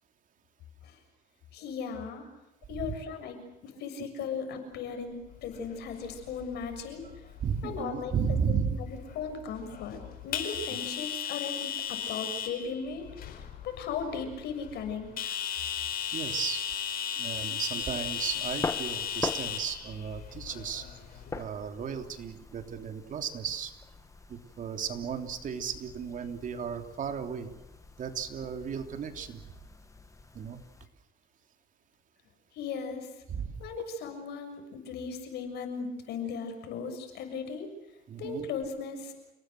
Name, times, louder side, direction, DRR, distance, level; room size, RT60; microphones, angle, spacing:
voice 1, 1.5-2.2 2.7-5.2 5.4-7.0 7.6-8.6 9.1-15.4 32.5-33.1 33.6-37.7 38.2-39.1, left 5 dB, 80° left, 7 dB, 6.8 m, -37 dB
sound 1, 5.3-21.4, left 8 dB, 60° left, 5.0 m, -37 dB
voice 2, 7.4-8.8 16.1-16.6 17.2-20.8 21.3-23.7 24.3-27.5 28.0-29.4 30.3-30.6 33.3-33.6 38.1-38.5, right 7 dB, 50° right, 6 dB, 3.4 m, -34 dB
sound 2, 17.8-30.9, left 3 dB, 20° left, 1.6 m, -43 dB
29.5 x 19.5 x 7.9 m, 0.98 s
cardioid pair, 110°, 17 cm